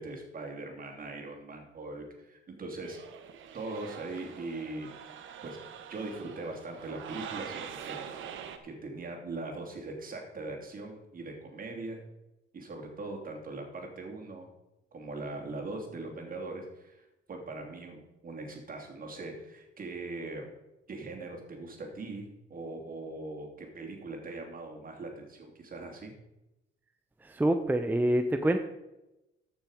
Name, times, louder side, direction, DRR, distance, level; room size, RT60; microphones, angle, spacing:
voice 1, 0.0-3.0 3.5-4.9 5.4-5.6 5.9-8.3 8.6-12.0 12.5-14.5 14.9-20.5 20.9-26.1, right 2 dB, 45° right, 1 dB, 2.9 m, -41 dB
sound 1, 2.8-8.6, right 8 dB, 75° right, 1.2 m, -44 dB
voice 2, 27.2-28.6, right 1 dB, 10° right, 6 dB, 0.7 m, -26 dB
14.0 x 6.2 x 5.0 m, 0.97 s
cardioid pair, 90°, 20 cm